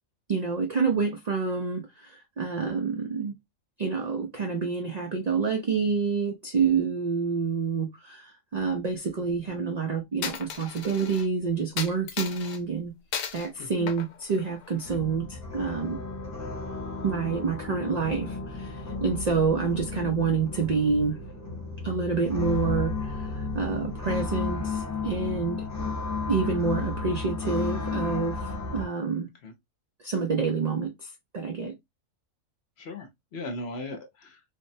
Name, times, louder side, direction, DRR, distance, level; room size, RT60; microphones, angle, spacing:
voice 1, 0.3-3.3 3.8-12.9 13.3-16.0 17.0-21.2 21.8-25.6 26.3-29.3 30.0-31.1 31.3-31.8, right 5 dB, 70° right, 0.4 m, -28 dB
Coin (dropping), 10.2-11.3 11.8-12.6 13.1-13.5 13.9-15.0, left 8 dB, 85° left, 1.0 m, -35 dB
voice 2, 13.6-13.9 29.4-29.5 32.8-34.4, left 2 dB, 60° left, 0.9 m, -38 dB
sound 1, 14.9-28.9, left 3 dB, 20° left, 0.5 m, -33 dB
3.4 x 2.1 x 2.5 m
omnidirectional pair, 1.4 m